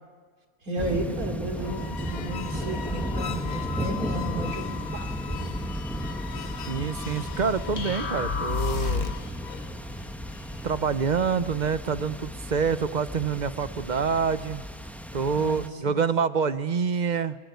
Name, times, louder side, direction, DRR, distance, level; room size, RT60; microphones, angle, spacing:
voice 1, 0.6-5.5 15.3-16.0, right 2 dB, 80° right, 4 dB, 3.5 m, -34 dB
sound 1, 0.8-15.7, equal, ahead, 1.0 m, -34 dB
sound 2, 1.5-10.9, left 9 dB, 75° left, 1.5 m, -40 dB
voice 2, 6.7-9.2 10.6-14.6 15.1-17.4, right 6 dB, 40° right, 13 dB, 0.7 m, -26 dB
sound 3, 7.8-9.3, left 5 dB, 50° left, 1.3 m, -29 dB
23.0 x 21.5 x 9.4 m, 1.5 s
omnidirectional pair, 1.5 m